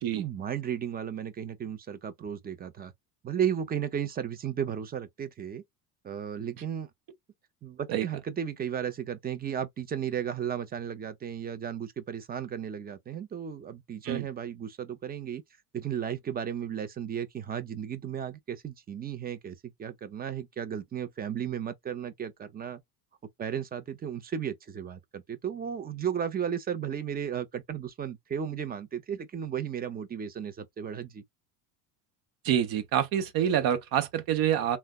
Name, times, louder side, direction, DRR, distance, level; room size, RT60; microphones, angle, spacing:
voice 1, 0.2-2.9 3.2-5.6 6.0-6.9 7.6-15.4 15.7-22.8 23.4-31.2, right 8 dB, 20° right, 0.5 m, -34 dB
voice 2, 32.4-34.8, right 10 dB, 50° right, 0.9 m, -27 dB
3.3 x 2.2 x 2.2 m
supercardioid pair, 100°, 45 cm